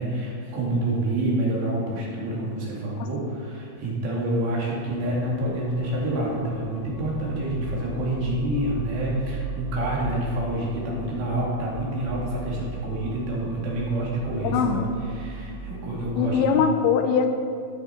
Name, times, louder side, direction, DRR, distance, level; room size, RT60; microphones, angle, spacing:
voice 1, 0.0-16.6, right 1 dB, 75° right, -5 dB, 4.7 m, -28 dB
sound 1, 4.8-16.4, right 1 dB, 45° right, 2.4 m, -36 dB
voice 2, 14.4-14.8 16.2-17.3, left 6 dB, 85° left, 6 dB, 3.1 m, -22 dB
12.5 x 10.5 x 4.5 m, 2.3 s
omnidirectional pair, 5.1 m